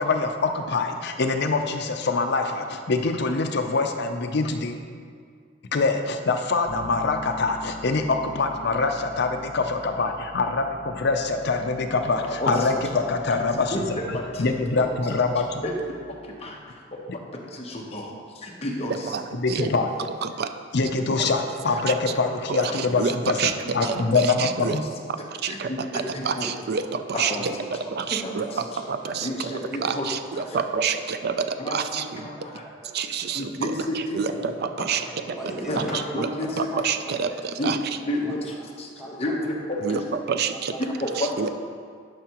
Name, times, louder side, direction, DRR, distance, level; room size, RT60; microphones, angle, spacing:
voice 1, 0.0-4.7 5.7-15.6 17.1-17.2 19.3-19.9 20.7-24.9, left 3 dB, 60° left, 5 dB, 0.6 m, -24 dB
Bass guitar, 6.7-16.5, left 1 dB, 75° right, 0.9 m, -45 dB
voice 2, 12.2-12.9 13.3-13.4 13.7-13.8 14.1-14.5 14.8-14.9 15.6-16.0 16.2-19.1 21.1-21.2 21.7-21.8 22.7-22.8 23.2-23.3 23.8-24.1 24.7-24.8 25.4-26.5 27.1-27.4 28.2-28.8 29.2-30.1 30.5-30.6 31.6-32.6 33.3-34.4 34.8-34.9 35.7-36.7 37.6-37.7 38.1-40.0 40.8-41.5, left 1 dB, 30° left, -1 dB, 0.9 m, -31 dB
voice 3, 19.1-19.7 20.2-20.5 21.2-21.3 22.5-23.5 23.8-24.8 25.4-27.5 27.9-29.5 29.8-32.3 32.9-35.1 35.8-35.9 36.2-36.3 36.6-37.8 39.8-40.0 40.3-40.7 41.2-41.5, right 6 dB, 55° right, 9 dB, 0.4 m, -28 dB
voice 4, 27.8-28.2 28.4-30.2 30.5-31.0 31.6-31.7 32.2-32.4 32.8-33.8 34.3-35.8 36.4-37.7 38.0-38.4 39.0-39.4 39.9-41.2, right 1 dB, 5° right, -6 dB, 1.4 m, -40 dB
11.0 x 5.6 x 3.0 m, 2.1 s
head